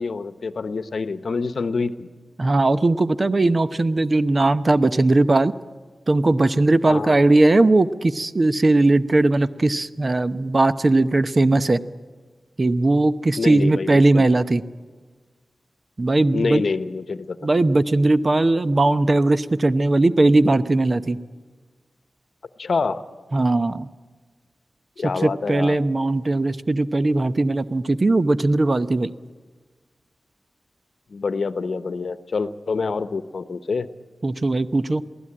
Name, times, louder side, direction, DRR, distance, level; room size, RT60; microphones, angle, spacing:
voice 1, 0.0-2.1 6.9-7.2 13.4-14.3 16.3-17.5 22.6-23.0 25.0-25.8 31.1-33.9, left 4 dB, 70° left, 12 dB, 0.9 m, -26 dB
voice 2, 2.4-5.5 6.1-11.8 12.6-14.6 16.0-16.6 17.4-21.2 23.3-23.9 25.2-29.1 34.2-35.0, right 2 dB, 45° right, 12 dB, 0.8 m, -19 dB
22.5 x 15.5 x 8.8 m, 1.5 s
cardioid pair, 40°, 0 cm